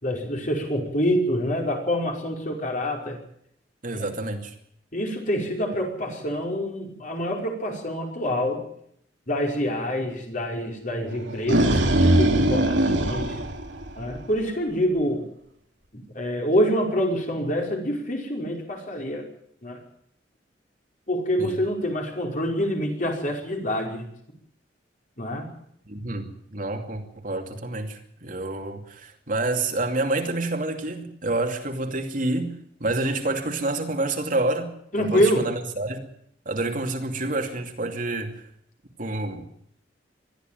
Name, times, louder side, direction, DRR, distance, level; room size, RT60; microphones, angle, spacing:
voice 1, 0.0-3.2 3.9-4.1 4.9-8.6 9.3-13.4 14.0-15.3 15.9-19.3 19.6-19.8 21.1-24.1 25.2-25.5 34.9-35.5, equal, 45° left, 1 dB, 5.2 m, -26 dB
voice 2, 3.8-4.5 21.4-21.6 25.9-36.1 36.5-38.5 39.0-39.5, right 2 dB, 45° right, 4 dB, 2.7 m, -28 dB
sound 1, 11.2-14.4, right 1 dB, 85° right, 2.5 m, -21 dB
21.0 x 13.5 x 9.2 m, 0.70 s
head